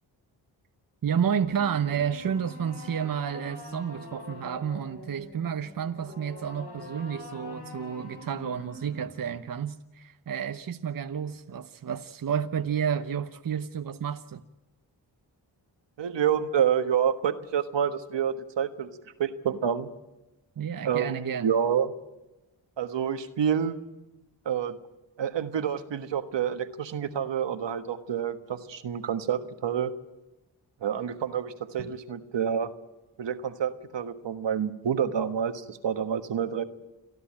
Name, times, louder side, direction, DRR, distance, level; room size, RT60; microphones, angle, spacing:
voice 1, 1.0-14.4 20.6-21.5 31.8-31.9, right 8 dB, 50° right, 0.9 m, -31 dB
sound 1, 1.4-9.4, left 2 dB, 90° left, 4.5 m, -45 dB
voice 2, 16.0-18.9 19.2-19.9 20.8-21.9 22.8-23.8 24.4-24.8 25.2-29.9 30.8-32.7 33.2-36.6, right 8 dB, 70° right, 1.5 m, -28 dB
29.0 x 11.0 x 8.7 m
supercardioid pair, 45°, 45 cm